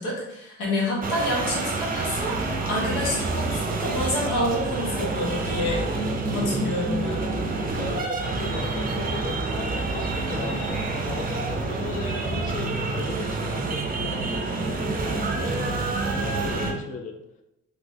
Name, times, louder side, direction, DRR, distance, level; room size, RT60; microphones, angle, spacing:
voice 1, 0.0-5.8 6.3-7.2, left 1 dB, 85° left, -3 dB, 1.2 m, -28 dB
sound 1, 1.0-16.7, right 3 dB, 30° right, 0.5 m, -28 dB
voice 2, 7.8-14.7 15.0-17.1, left 5 dB, 25° left, 3 dB, 0.4 m, -37 dB
3.1 x 3.0 x 2.6 m, 0.85 s
cardioid pair, 90°, 30 cm